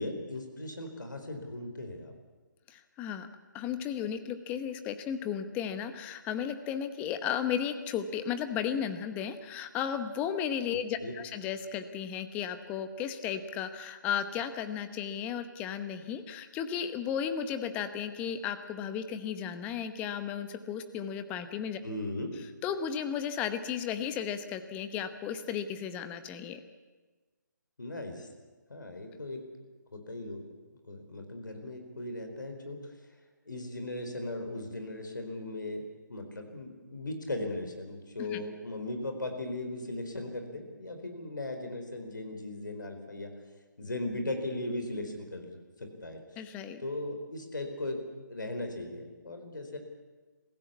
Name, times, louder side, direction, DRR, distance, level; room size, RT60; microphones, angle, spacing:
voice 1, 0.0-2.1 11.0-11.1 21.8-22.3 27.8-28.3 28.7-29.4 29.9-30.4 30.9-32.8 33.5-35.8 36.1-43.3 43.8-46.2 46.8-48.0 48.3-49.8, left 2 dB, 70° left, 5 dB, 4.5 m, -38 dB
voice 2, 2.7-3.3 3.5-21.8 22.6-26.6 38.2-38.4 46.4-46.8, left 8 dB, 15° left, 10 dB, 1.0 m, -34 dB
23.0 x 15.5 x 8.5 m, 1.3 s
figure-of-eight pair, 145°, 11 cm